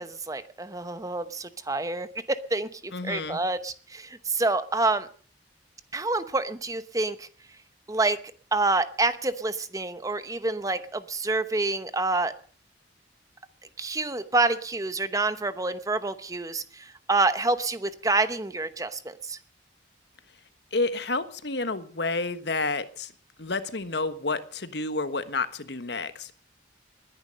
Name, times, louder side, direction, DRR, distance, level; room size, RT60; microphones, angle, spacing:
voice 1, 0.0-5.1 5.9-7.3 7.9-8.2 8.5-12.3 13.8-19.4, right 3 dB, 20° right, 12 dB, 0.9 m, -27 dB
voice 2, 2.9-3.4 20.7-23.1 23.4-26.3, left 3 dB, 60° left, 12 dB, 1.3 m, -30 dB
20.0 x 10.5 x 6.5 m, 0.43 s
head